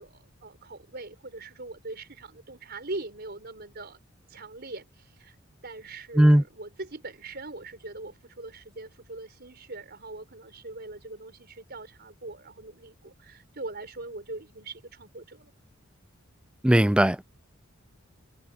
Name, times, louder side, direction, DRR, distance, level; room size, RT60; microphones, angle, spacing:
voice 1, 0.0-4.0 4.3-5.3 5.6-15.5, right 2 dB, 50° right, 5.0 m, -41 dB
voice 2, 16.6-17.2, right 1 dB, 5° right, 0.4 m, -18 dB
head